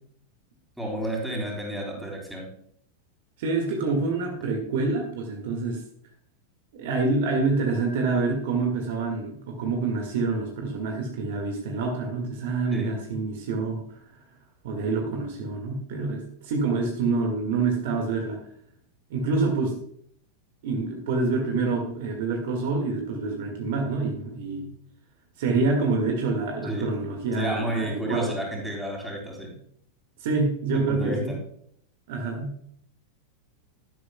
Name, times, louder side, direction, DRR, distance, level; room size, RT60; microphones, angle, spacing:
voice 1, 0.8-2.5 12.7-13.0 24.5-24.8 26.7-26.9 27.3-29.6 30.7-31.4, equal, 5° right, -1 dB, 3.6 m, -31 dB
voice 2, 3.4-5.8 6.7-14.0 14.6-18.4 19.1-19.8 20.6-24.6 25.4-28.3 30.2-31.4 32.1-32.6, right 3 dB, 55° right, 3 dB, 1.8 m, -27 dB
12.0 x 11.5 x 2.3 m, 0.67 s
figure-of-eight pair, 90°, 0 cm